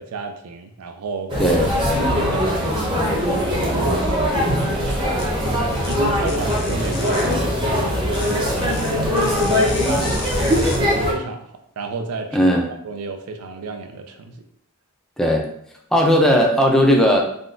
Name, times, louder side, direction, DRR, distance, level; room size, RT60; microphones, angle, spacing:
voice 1, 0.0-1.4 2.0-4.3 4.6-5.0 5.5-9.0 9.4-12.5 12.8-14.4, right 3 dB, 85° right, 6 dB, 0.4 m, -31 dB
sound 1, 1.3-11.1, equal, 20° right, 0.8 m, -21 dB
voice 2, 1.4-1.7 12.3-12.7 15.2-15.4 15.9-17.2, equal, ahead, 0 dB, 0.3 m, -16 dB
sound 2, 5.2-5.3 5.8-5.9 6.3-7.3 8.1-10.8, left 4 dB, 80° left, 0.6 m, -35 dB
3.7 x 2.2 x 2.5 m, 0.71 s
head